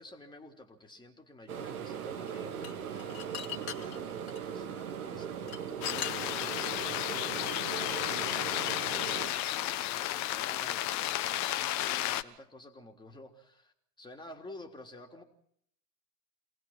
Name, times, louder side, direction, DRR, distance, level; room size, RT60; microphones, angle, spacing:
voice 1, 0.0-3.3 3.7-6.4 6.8-8.4 9.2-15.2, left 2 dB, 10° left, 3 dB, 3.5 m, -51 dB
sound 1, 1.5-9.3, right 8 dB, 65° right, 3.0 m, -39 dB
sound 2, 2.3-4.4 5.1-6.7, left 9 dB, 65° left, 2.7 m, -39 dB
sound 3, 5.8-12.2, left 13 dB, 40° left, 1.2 m, -33 dB
28.0 x 19.5 x 6.0 m, 0.69 s
figure-of-eight pair, 90°, 46 cm